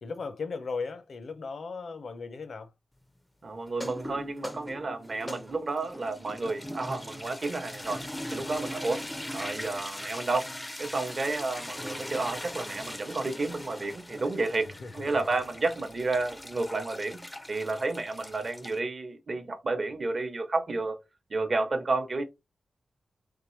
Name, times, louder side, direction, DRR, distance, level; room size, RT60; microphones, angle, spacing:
voice 1, 0.0-2.7 8.3-8.5 14.8-15.1, left 4 dB, 70° left, 0.6 m, -37 dB
voice 2, 3.4-8.0 8.3-9.0 9.3-10.5 10.8-21.0 21.3-22.2, right 3 dB, 45° right, 0.8 m, -31 dB
sound 1, 3.7-18.8, left 1 dB, 10° left, 0.4 m, -40 dB
3.6 x 3.1 x 3.1 m
wide cardioid pair, 110°, 0 cm